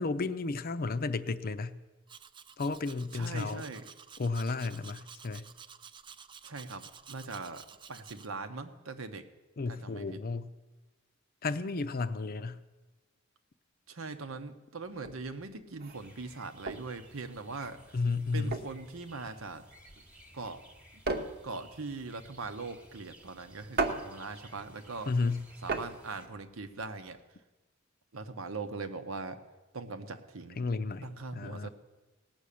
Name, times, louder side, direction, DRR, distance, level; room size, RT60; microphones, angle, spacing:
voice 1, 0.0-1.8 2.6-3.7 4.2-5.5 9.6-10.5 11.4-12.6 17.9-18.6 25.1-25.5 30.6-31.7, left 3 dB, 45° left, 0.6 m, -33 dB
Domestic sounds home sounds, 2.1-8.3, right 7 dB, 25° right, 0.4 m, -52 dB
voice 2, 3.1-3.9 6.4-9.3 9.7-10.2 13.9-17.8 18.3-19.7 20.3-20.6 21.4-25.1 25.6-27.2 28.1-29.4 29.7-30.6 31.0-31.7, right 3 dB, 85° right, 1.0 m, -41 dB
sound 1, 14.9-27.2, right 3 dB, 50° right, 1.0 m, -38 dB
sound 2, 15.9-26.3, right 1 dB, 5° right, 1.3 m, -57 dB
18.0 x 6.3 x 8.4 m
head